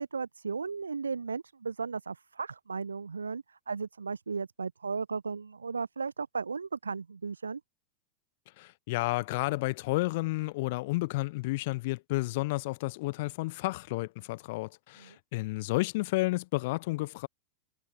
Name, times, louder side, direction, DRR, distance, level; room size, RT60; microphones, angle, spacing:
voice 1, 0.0-7.6 15.0-15.2, right 5 dB, 75° right, 0.5 m, -35 dB
voice 2, 8.6-17.3, left 21 dB, 50° left, 0.7 m, -31 dB
figure-of-eight pair, 90°, 0 cm